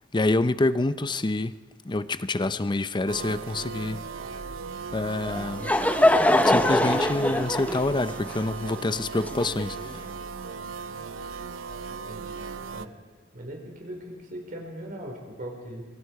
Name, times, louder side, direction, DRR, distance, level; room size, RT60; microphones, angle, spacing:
voice 1, 0.1-4.0 4.9-5.7 6.4-10.0, left 2 dB, 25° left, 0.6 m, -27 dB
sound 1, 3.1-12.9, right 5 dB, 85° right, 0.8 m, -37 dB
Laughter / Crowd, 5.3-9.9, left 1 dB, 10° left, 1.0 m, -23 dB
voice 2, 11.9-12.4 12.7-13.0 13.3-15.9, equal, 45° right, 4.9 m, -40 dB
26.5 x 23.5 x 4.8 m
head